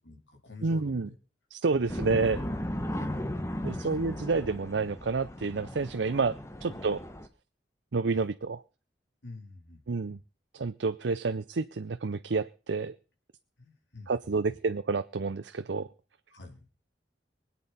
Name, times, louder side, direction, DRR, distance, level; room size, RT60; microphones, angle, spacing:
voice 1, 0.0-1.2 1.7-2.0 2.9-3.1 3.5-4.2 6.7-7.1 8.1-8.3 9.2-10.2 13.6-14.6 16.3-16.7, left 3 dB, 85° left, 2 dB, 3.8 m, -49 dB
voice 2, 0.6-1.1 1.5-2.4 3.6-7.0 7.9-8.6 9.9-10.2 10.5-12.9 14.1-15.9, right 4 dB, 80° right, 10 dB, 0.6 m, -29 dB
sound 1, 1.9-7.3, left 1 dB, 15° left, 1.0 m, -36 dB
24.0 x 8.6 x 4.2 m, 0.36 s
head